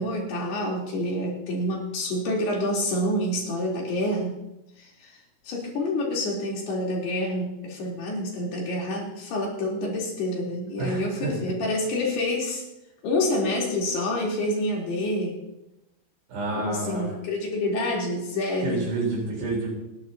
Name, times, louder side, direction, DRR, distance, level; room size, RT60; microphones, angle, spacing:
voice 1, 0.0-4.4 4.8-5.2 5.4-12.6 13.0-15.4 16.6-18.9, left 1 dB, 75° left, -3 dB, 5.7 m, -27 dB
voice 2, 10.8-11.3 16.3-17.1 18.6-19.7, right 2 dB, 80° right, -4 dB, 6.2 m, -28 dB
30.0 x 11.5 x 2.9 m, 0.90 s
omnidirectional pair, 4.7 m